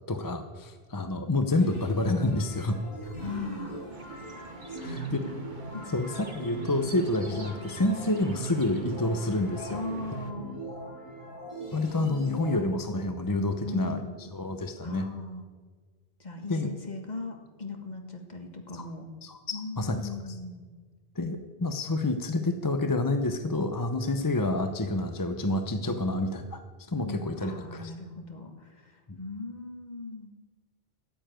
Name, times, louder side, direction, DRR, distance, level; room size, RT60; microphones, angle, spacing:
voice 1, 0.1-2.8 4.8-5.2 5.9-9.8 11.7-14.0 14.3-15.1 16.5-16.7 18.7-18.9 19.2-20.0 20.3-20.4 21.2-26.6 26.9-27.9 29.1-29.2, left 2 dB, 25° left, 7 dB, 0.7 m, -28 dB
sound 1, 1.6-12.6, right 2 dB, 70° left, 4.8 m, -40 dB
voice 2, 3.0-3.9 4.7-5.3 5.7-5.9 9.7-10.6 13.6-14.2 14.8-15.4 16.2-19.1 19.5-20.8 26.9-30.3, left 3 dB, 45° left, 3 dB, 1.7 m, -39 dB
sound 2, 3.9-10.3, right 3 dB, 50° right, 1.4 m, -47 dB
14.0 x 7.1 x 9.0 m, 1.5 s
omnidirectional pair, 1.1 m